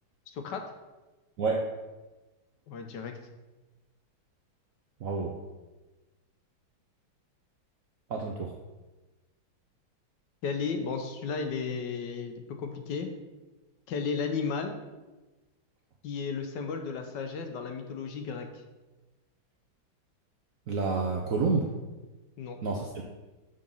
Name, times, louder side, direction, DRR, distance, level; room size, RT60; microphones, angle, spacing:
voice 1, 0.3-0.6 2.7-3.1 10.4-13.1 13.9-14.7 16.0-18.5 22.4-22.6, left 5 dB, 75° left, 5 dB, 1.2 m, -34 dB
voice 2, 1.4-1.7 5.0-5.3 8.1-8.5 20.7-21.7 22.6-23.0, right 4 dB, 70° right, 0 dB, 0.8 m, -29 dB
6.7 x 3.8 x 5.3 m, 1.1 s
omnidirectional pair, 2.1 m